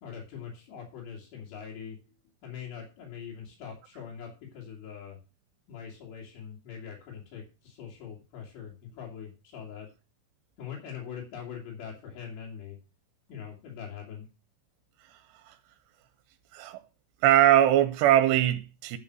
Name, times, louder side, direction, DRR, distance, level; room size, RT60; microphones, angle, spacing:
voice 1, 0.0-2.0 2.4-5.2 5.7-9.9 10.6-12.8 13.3-14.3, left 7 dB, 80° left, 4.6 m, -42 dB
voice 2, 17.2-19.0, right 12 dB, 90° right, 2.9 m, -21 dB
11.0 x 5.5 x 6.1 m
omnidirectional pair, 4.9 m